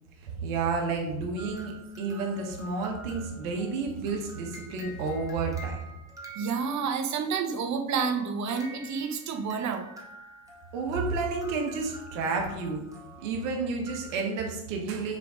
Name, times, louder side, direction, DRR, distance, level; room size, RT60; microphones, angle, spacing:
voice 1, 0.2-5.8 10.7-12.9 13.2-15.2, right 4 dB, 80° right, 1 dB, 1.8 m, -31 dB
sound 1, 1.4-7.1 8.0-14.2, right 2 dB, 10° right, 1.7 m, -48 dB
voice 2, 6.3-9.9, right 5 dB, 45° right, 7 dB, 1.1 m, -29 dB
6.7 x 3.9 x 5.0 m, 0.88 s
supercardioid pair, 105°, 40 cm